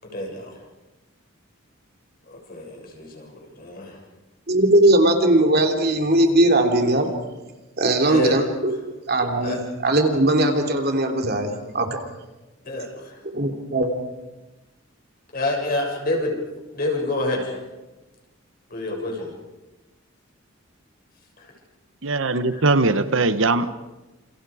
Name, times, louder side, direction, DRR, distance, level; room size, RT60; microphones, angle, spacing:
voice 1, 0.0-0.6 2.3-4.0 8.0-8.4 9.4-9.6 12.7-13.2 15.3-16.4 16.7-17.6 18.7-19.3 21.4-21.5 22.5-22.6, left 1 dB, 45° left, 1 dB, 6.8 m, -27 dB
voice 2, 4.5-7.1 7.8-11.5 11.7-12.0 13.3-13.9, right 1 dB, 50° right, 4 dB, 3.0 m, -19 dB
voice 3, 22.0-23.7, right 3 dB, 70° right, 12 dB, 1.1 m, -20 dB
29.0 x 28.5 x 5.0 m, 1.1 s
head